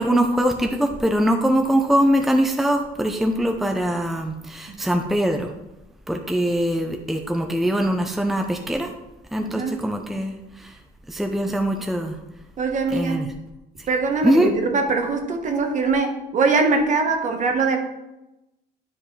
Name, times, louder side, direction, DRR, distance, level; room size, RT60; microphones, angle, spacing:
voice 1, 0.0-5.5 6.1-8.9 9.3-10.7 11.1-12.2 12.9-13.3 14.2-14.5, equal, ahead, 3 dB, 0.6 m, -22 dB
voice 2, 9.4-9.8 12.6-13.3 13.9-17.8, right 4 dB, 45° right, 4 dB, 1.2 m, -22 dB
9.5 x 5.2 x 3.3 m, 0.96 s
cardioid pair, 110°, 17 cm